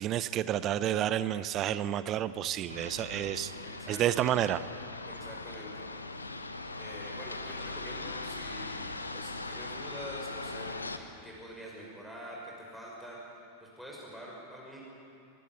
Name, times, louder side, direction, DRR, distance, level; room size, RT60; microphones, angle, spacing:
voice 1, 0.0-3.5 3.9-4.6, right 11 dB, 35° right, 15 dB, 0.8 m, -30 dB
sound 1, 2.7-11.0, left 3 dB, 80° left, 1.3 m, -40 dB
voice 2, 3.3-4.4 5.0-5.9 6.7-13.2 13.6-14.8, equal, ahead, -4 dB, 6.5 m, -46 dB
25.0 x 18.0 x 9.6 m, 2.6 s
figure-of-eight pair, 90°, 0 cm